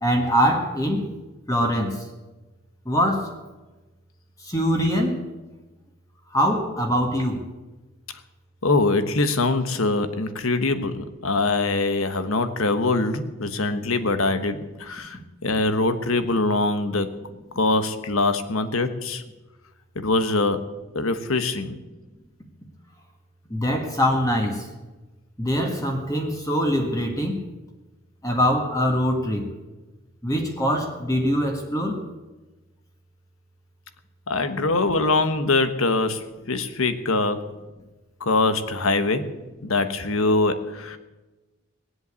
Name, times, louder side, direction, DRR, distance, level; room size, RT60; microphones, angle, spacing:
voice 1, 0.0-1.1 1.5-2.1 2.8-3.3 4.4-5.2 6.3-7.4 23.5-24.7 25.4-27.4 28.2-29.5 30.2-32.1, equal, 15° left, 2 dB, 1.5 m, -23 dB
voice 2, 8.6-17.1 17.5-19.2 19.9-20.6 20.9-21.8 34.3-37.4 38.2-39.3 39.6-41.0, left 3 dB, 85° left, 10 dB, 1.2 m, -23 dB
19.5 x 8.1 x 8.3 m, 1.1 s
head